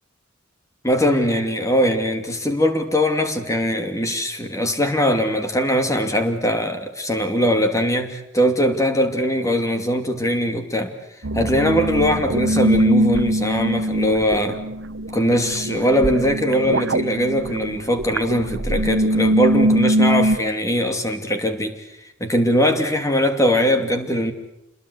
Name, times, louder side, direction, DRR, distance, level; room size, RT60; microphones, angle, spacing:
voice 1, 0.8-10.9 11.3-14.6 15.1-21.7 22.2-24.3, equal, 15° left, 6 dB, 2.7 m, -21 dB
sound 1, 11.2-20.4, right 1 dB, 75° right, 1.0 m, -22 dB
27.5 x 22.0 x 8.2 m, 0.81 s
head